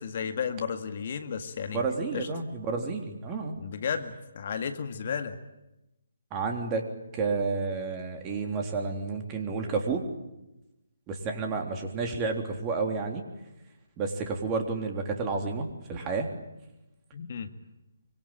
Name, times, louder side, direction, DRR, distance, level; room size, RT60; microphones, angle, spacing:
voice 1, 0.0-2.3 3.6-5.4 17.1-17.5, left 6 dB, 45° left, 8 dB, 2.0 m, -33 dB
voice 2, 1.7-3.6 6.3-6.9 7.1-10.1 11.1-13.2 14.0-16.3, right 4 dB, 20° right, 3 dB, 3.6 m, -30 dB
25.0 x 25.0 x 9.0 m, 0.95 s
figure-of-eight pair, 145°, 0 cm